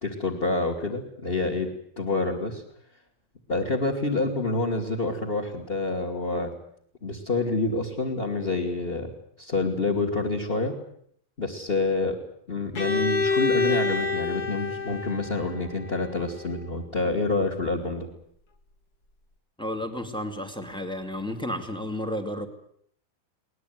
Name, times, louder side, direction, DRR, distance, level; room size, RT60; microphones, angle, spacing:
voice 1, 0.0-1.7 2.0-2.6 3.5-6.5 7.0-9.1 9.4-10.7 11.4-12.2 12.5-18.1, left 3 dB, 20° left, 6 dB, 2.0 m, -27 dB
Bowed string instrument, 12.7-16.6, left 3 dB, 60° left, 1.0 m, -27 dB
voice 2, 19.6-22.5, left 1 dB, ahead, 5 dB, 1.2 m, -32 dB
22.5 x 20.0 x 9.4 m, 0.66 s
omnidirectional pair, 4.7 m